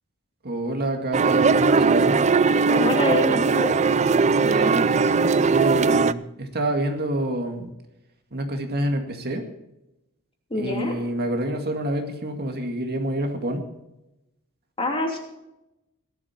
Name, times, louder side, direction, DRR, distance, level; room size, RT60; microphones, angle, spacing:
voice 1, 0.4-2.2 4.4-7.7 8.3-9.4 10.6-13.6, right 1 dB, 45° right, 4 dB, 2.0 m, -27 dB
sound 1, 1.1-6.1, right 4 dB, 30° right, 0.4 m, -19 dB
voice 2, 2.7-3.7 10.5-10.9 14.8-15.2, left 1 dB, 25° left, 1 dB, 3.1 m, -25 dB
17.5 x 12.0 x 4.4 m, 0.90 s
head